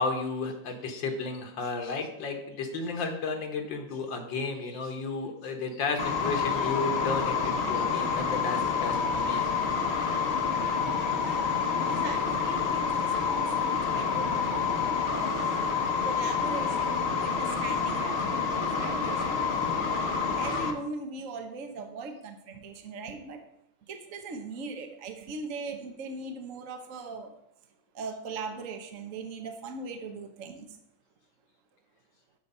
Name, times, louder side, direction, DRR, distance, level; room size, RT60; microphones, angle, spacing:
voice 1, 0.0-9.6, left 3 dB, 70° left, 5 dB, 1.8 m, -33 dB
sound 1, 6.0-20.7, left 5 dB, 45° left, 0.9 m, -28 dB
voice 2, 11.2-14.6 15.1-15.8 16.0-19.5 19.9-23.4 23.9-27.3 27.9-30.8, right 3 dB, 50° right, 5 dB, 1.1 m, -40 dB
13.0 x 4.7 x 5.4 m, 0.80 s
omnidirectional pair, 2.2 m